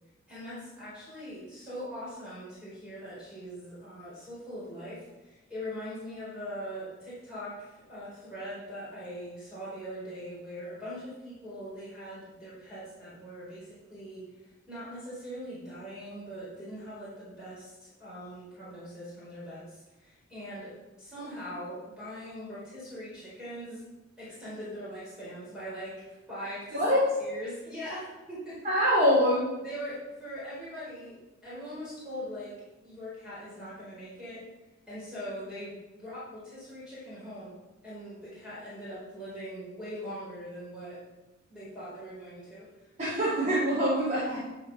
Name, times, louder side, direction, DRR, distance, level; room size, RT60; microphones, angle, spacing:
voice 1, 0.3-20.7 21.0-23.8 24.2-28.6 29.6-32.5 32.8-34.4 34.9-41.0 41.5-42.7, equal, 5° right, -10 dB, 4.5 m, -41 dB
voice 2, 26.7-27.1 28.6-29.4 43.0-44.5, equal, 35° right, -10 dB, 4.0 m, -24 dB
12.0 x 5.6 x 6.6 m, 1.1 s
head